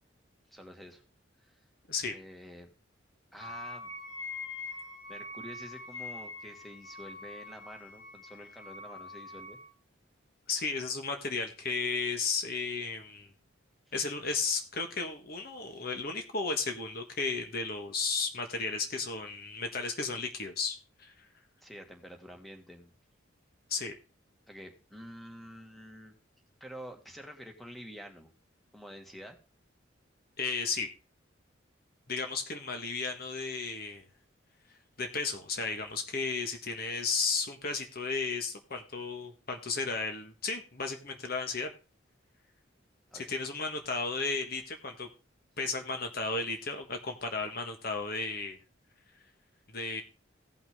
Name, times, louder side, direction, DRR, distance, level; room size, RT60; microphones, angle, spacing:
voice 1, 0.5-1.0 1.4-1.6 2.1-2.7 3.3-3.9 4.7-9.6 21.6-22.9 24.5-26.1 26.6-28.3 28.7-29.4 43.1-43.3, equal, ahead, 3 dB, 1.8 m, -48 dB
Wind instrument woodwind instrument, 3.4-9.7, left 3 dB, 70° left, 3.0 m, -44 dB
voice 2, 10.5-13.3 13.9-21.3 23.7-23.9 30.4-30.9 32.1-34.0 35.0-41.7 43.1-45.1 45.6-48.6 49.7-50.0, left 4 dB, 50° left, 5 dB, 1.5 m, -34 dB
17.0 x 5.9 x 3.6 m, 0.32 s
head